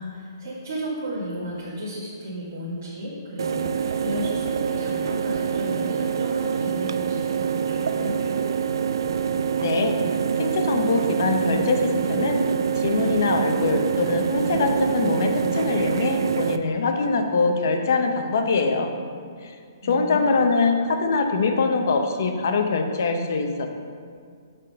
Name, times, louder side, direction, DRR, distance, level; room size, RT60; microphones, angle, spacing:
voice 1, 0.0-8.4 19.8-20.3, equal, 40° right, -9 dB, 1.4 m, -34 dB
sound 1, 3.4-16.6, right 7 dB, 80° right, 0.3 m, -25 dB
voice 2, 9.6-9.9 10.4-12.4 12.8-18.9 19.4-19.5 19.8-23.7, left 4 dB, 45° left, 5 dB, 0.6 m, -23 dB
6.7 x 3.7 x 5.0 m, 2.1 s
hypercardioid pair, 180°, 2 cm